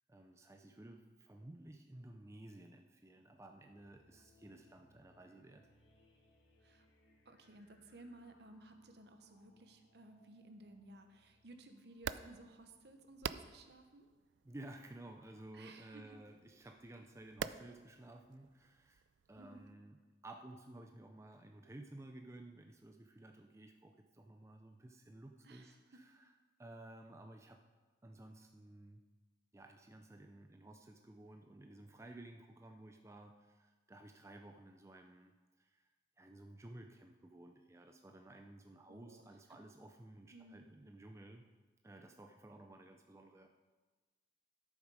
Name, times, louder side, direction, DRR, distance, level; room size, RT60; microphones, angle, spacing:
voice 1, 0.1-5.7 14.4-19.0 19.3-20.0 20.2-27.6 28.0-29.0 29.5-35.3 35.6-35.9 36.2-41.5 41.8-43.5, right 1 dB, 15° right, 4 dB, 0.4 m, -55 dB
sound 1, 3.1-13.3, left 1 dB, 85° left, 2.0 m, -72 dB
voice 2, 7.2-14.1 15.5-16.2 19.4-19.6 25.4-25.8 38.9-39.2 39.5-39.6 40.3-40.6, right 2 dB, 60° right, 6 dB, 1.0 m, -57 dB
sound 2, 11.9-19.7, right 7 dB, 80° right, 0.4 m, -49 dB
13.0 x 7.2 x 4.8 m, 1.3 s
head